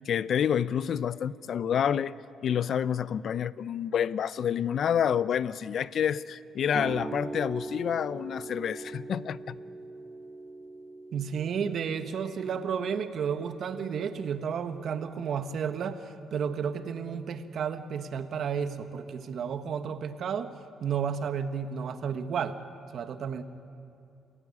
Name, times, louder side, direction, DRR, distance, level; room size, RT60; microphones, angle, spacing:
voice 1, 0.1-2.1 2.4-9.6, left 8 dB, 60° left, 18 dB, 0.6 m, -28 dB
sound 1, 6.7-14.7, right 3 dB, 40° right, 1.9 m, -42 dB
voice 2, 11.1-20.5 20.8-22.6 22.9-23.4, right 7 dB, 60° right, 9 dB, 1.4 m, -32 dB
28.0 x 16.5 x 9.8 m, 2.7 s
cardioid pair, 90°, 0 cm